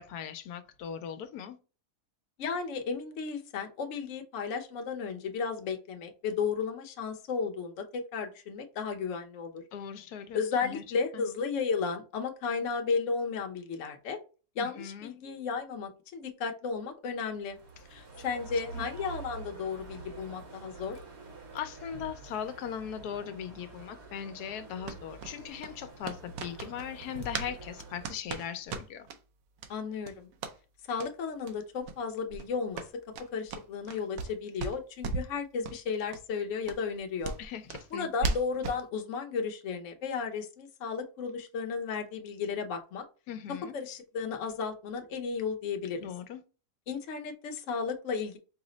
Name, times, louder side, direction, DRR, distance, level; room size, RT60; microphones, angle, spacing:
voice 1, 0.0-1.6 9.7-10.8 11.1-11.3 14.6-15.2 17.8-18.3 18.7-18.9 21.5-29.1 37.4-38.4 43.3-43.8 46.0-46.4, left 8 dB, 85° left, 1.1 m, -39 dB
voice 2, 2.4-9.6 10.3-14.2 14.6-17.6 18.2-21.0 29.7-30.3 30.9-33.0 33.3-37.3 37.9-43.0 43.7-46.1 46.9-48.4, left 5 dB, 60° left, 1.0 m, -34 dB
sound 1, 17.4-28.2, right 3 dB, 50° right, 1.1 m, -46 dB
sound 2, 24.8-27.5 27.8-29.2 29.6-29.7 30.0-30.6 30.9-31.1 31.4-31.5 31.8-32.0 32.3-34.3 34.6-35.3 35.6-35.8 36.1-36.2 36.6-38.8, right 4 dB, 75° right, 1.1 m, -37 dB
4.8 x 2.0 x 3.8 m
omnidirectional pair, 1.6 m